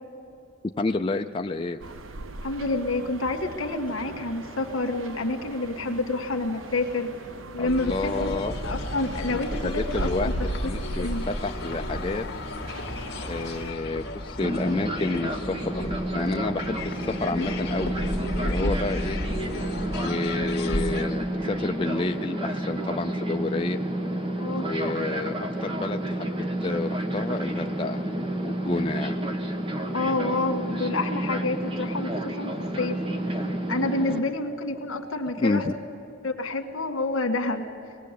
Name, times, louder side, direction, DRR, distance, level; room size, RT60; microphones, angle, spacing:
voice 1, 0.8-1.8 7.6-8.5 9.3-12.2 13.2-18.0 18.4-19.2 20.0-23.8 24.6-25.4 25.6-28.0 28.4-29.2 35.4-35.7, left 2 dB, 25° left, 4 dB, 0.5 m, -30 dB
sound 1, 1.8-13.7, right 1 dB, 75° right, 0.9 m, -38 dB
voice 2, 2.4-7.1 7.5-10.3 10.6-10.7 11.0-11.2 18.6-18.8 24.4-24.7 29.9-33.0 33.3-33.4 33.7-35.7 36.2-37.6, left 2 dB, 75° left, 6 dB, 1.8 m, -28 dB
sound 2, 7.7-21.0, left 1 dB, 55° left, 1.9 m, -33 dB
Fixed-wing aircraft airplane, 14.4-34.2, right 1 dB, 25° right, 1.3 m, -30 dB
24.5 x 20.0 x 8.4 m, 2.8 s
head